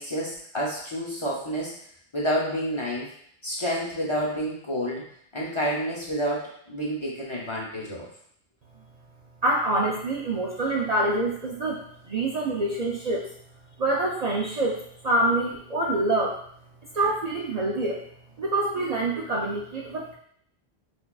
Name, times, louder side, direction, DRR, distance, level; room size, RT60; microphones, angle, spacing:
voice 1, 0.0-1.7 2.1-3.1 3.4-5.1 5.3-8.1, equal, 35° left, -5 dB, 0.7 m, -29 dB
voice 2, 9.4-13.2 13.8-14.8 15.0-16.4 16.9-18.0 18.4-20.1, right 2 dB, 50° right, -4 dB, 0.5 m, -26 dB
5.9 x 2.4 x 2.3 m, 0.65 s
omnidirectional pair, 1.1 m